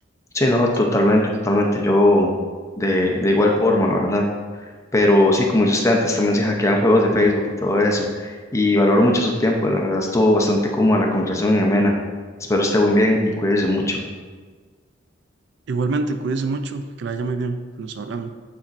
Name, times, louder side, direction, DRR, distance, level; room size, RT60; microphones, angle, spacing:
voice 1, 0.3-2.3 2.8-4.3 4.9-11.9 12.5-14.0, left 1 dB, 15° left, 0 dB, 0.6 m, -18 dB
voice 2, 15.7-18.3, right 3 dB, 60° right, 8 dB, 0.4 m, -26 dB
8.8 x 4.2 x 2.5 m, 1.5 s
head